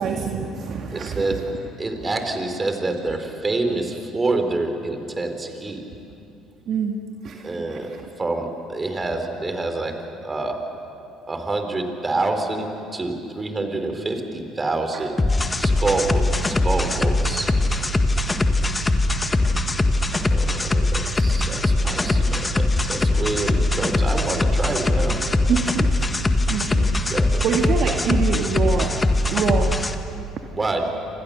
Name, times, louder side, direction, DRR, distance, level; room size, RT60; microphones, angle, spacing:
voice 1, 0.0-1.6 6.7-8.1 14.9-15.1 25.5-26.0 26.5-27.0 27.4-29.0 29.3-29.8, right 6 dB, 50° right, 3 dB, 1.8 m, -26 dB
voice 2, 0.9-1.5 1.8-5.8 7.4-10.6 11.3-15.2 15.6-17.8 20.3-25.2 27.1-27.5 27.9-28.0 30.5-31.0, right 2 dB, 25° right, 6 dB, 4.2 m, -27 dB
sound 1, 15.2-29.9, left 2 dB, 20° left, 1.7 m, -21 dB
29.0 x 26.5 x 6.9 m, 2.6 s
hypercardioid pair, 55°, 0 cm